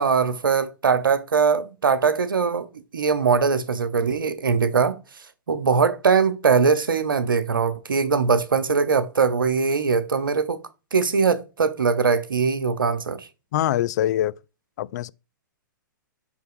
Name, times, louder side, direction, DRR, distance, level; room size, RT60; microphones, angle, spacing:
voice 1, 0.0-2.7 2.9-5.0 5.5-10.6 10.9-13.3, right 5 dB, 85° right, 0.8 m, -21 dB
voice 2, 13.5-14.3 14.8-15.1, left 12 dB, 55° left, 0.4 m, -23 dB
5.6 x 3.7 x 4.7 m
hypercardioid pair, 120°, 11 cm